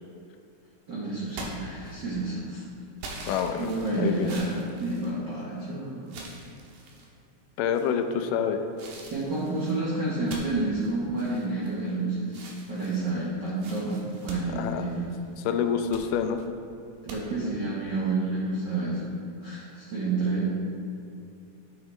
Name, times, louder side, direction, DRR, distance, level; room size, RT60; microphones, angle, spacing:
voice 1, 0.9-2.6 3.6-6.1 9.0-15.1 17.0-19.1 19.4-20.5, right 2 dB, 70° right, -7 dB, 1.0 m, -29 dB
sound 1, 1.3-2.3 3.0-5.6 6.1-7.1 7.7-8.2 8.8-12.0 12.3-15.3 15.7-16.1 17.1-17.2, right 2 dB, 85° right, 2.6 m, -43 dB
voice 2, 3.3-4.4 7.6-8.6 14.6-14.9 15.5-16.4, left 7 dB, 85° left, 7 dB, 2.2 m, -27 dB
9.6 x 7.1 x 3.1 m, 2.7 s
omnidirectional pair, 3.7 m